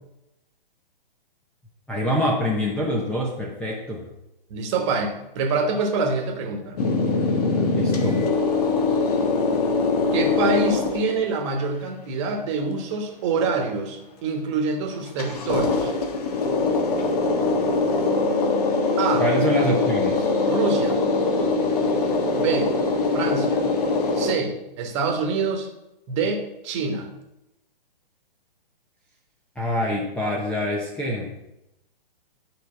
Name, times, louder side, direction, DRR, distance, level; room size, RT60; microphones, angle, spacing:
voice 1, 1.9-4.0 7.7-8.2 19.2-20.3 29.6-31.3, equal, 5° left, -3 dB, 0.7 m, -25 dB
voice 2, 4.5-6.8 10.1-15.9 19.0-19.2 20.5-21.0 22.4-22.7 23.1-23.6 24.1-25.7 26.1-27.1, right 4 dB, 30° right, 3 dB, 1.4 m, -26 dB
sound 1, 6.8-11.4 15.1-24.3, left 3 dB, 40° left, 1.4 m, -22 dB
10.5 x 5.2 x 5.6 m, 0.91 s
figure-of-eight pair, 125°, 29 cm